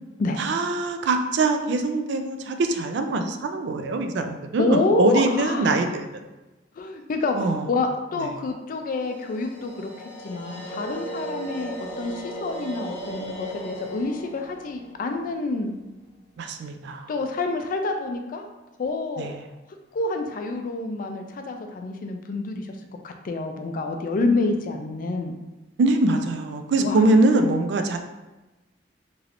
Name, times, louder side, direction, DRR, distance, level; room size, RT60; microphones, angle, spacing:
voice 1, 0.4-6.1 7.4-7.7 8.2-8.3 16.4-17.1 19.2-19.3 24.2-24.3 25.8-28.0, right 2 dB, 65° right, 6 dB, 0.3 m, -23 dB
voice 2, 4.6-5.9 6.8-9.9 10.2-15.8 17.1-18.5 18.8-19.3 19.9-22.7 23.0-25.3 26.8-27.0, left 3 dB, 50° left, 5 dB, 0.3 m, -27 dB
sound 1, 8.9-16.1, right 1 dB, 30° left, 0.9 m, -37 dB
3.0 x 2.8 x 2.5 m, 1.1 s
head